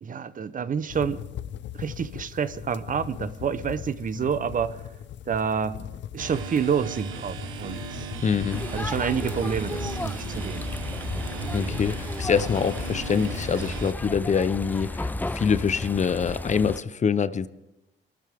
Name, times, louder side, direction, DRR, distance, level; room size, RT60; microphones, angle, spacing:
voice 1, 0.0-1.2 1.8-4.8 5.3-5.8 6.1-8.1 8.7-10.6, right 7 dB, 40° right, 14 dB, 0.8 m, -28 dB
sound 1, 0.9-13.6, left 10 dB, 65° left, 0.6 m, -39 dB
sound 2, 6.2-13.9, right 6 dB, 90° right, 1.3 m, -37 dB
voice 2, 8.2-8.7 11.5-17.5, left 6 dB, 35° left, 15 dB, 0.8 m, -25 dB
sound 3, 8.5-16.8, left 2 dB, 10° left, 0.4 m, -34 dB
23.5 x 13.0 x 3.6 m, 0.93 s
cardioid pair, 90°, 20 cm